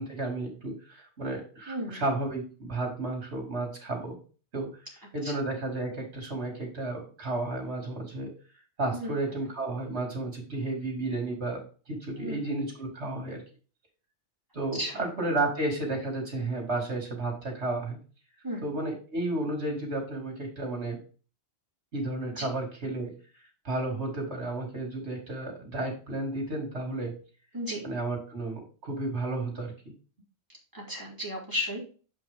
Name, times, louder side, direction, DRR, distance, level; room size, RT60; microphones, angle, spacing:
voice 1, 0.0-4.2 4.5-4.7 5.1-8.3 8.8-11.6 11.9-13.4 14.5-18.0 18.6-21.0 21.9-23.1 23.6-27.2 27.8-29.7, right 2 dB, 70° right, 2 dB, 2.8 m, -32 dB
voice 2, 1.7-2.0 5.2-5.3 8.9-9.1 12.2-12.4 14.7-15.0 18.4-18.6 22.3-22.5 27.5-27.8 30.7-31.8, equal, 20° right, -3 dB, 2.6 m, -34 dB
6.8 x 5.6 x 3.5 m, 0.36 s
omnidirectional pair, 1.2 m